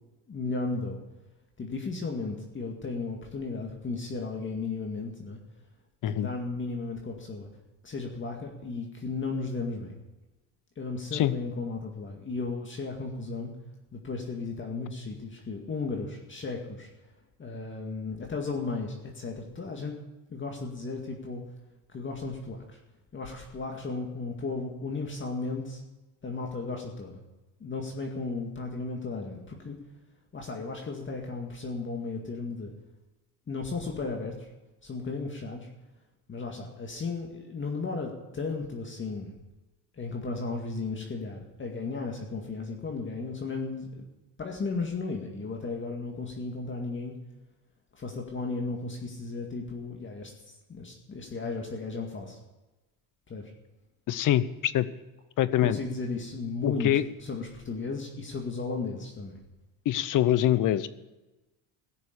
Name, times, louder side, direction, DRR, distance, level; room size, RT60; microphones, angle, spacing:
voice 1, 0.3-1.0 1.6-5.4 6.1-7.5 7.8-9.9 10.8-13.5 13.9-16.9 17.4-20.0 20.3-21.4 21.9-22.8 23.1-25.8 26.2-27.2 27.6-29.8 30.3-32.7 33.5-34.5 34.8-35.7 36.3-39.3 40.0-44.1 44.4-47.1 47.9-52.4 53.3-53.5 55.6-56.9 57.2-59.4, left 3 dB, 25° left, 1 dB, 2.1 m, -35 dB
voice 2, 54.1-54.9 55.4-55.8 56.6-57.0 59.8-60.9, left 12 dB, 45° left, 16 dB, 0.8 m, -24 dB
16.5 x 6.9 x 8.4 m, 1.1 s
supercardioid pair, 110°, 42 cm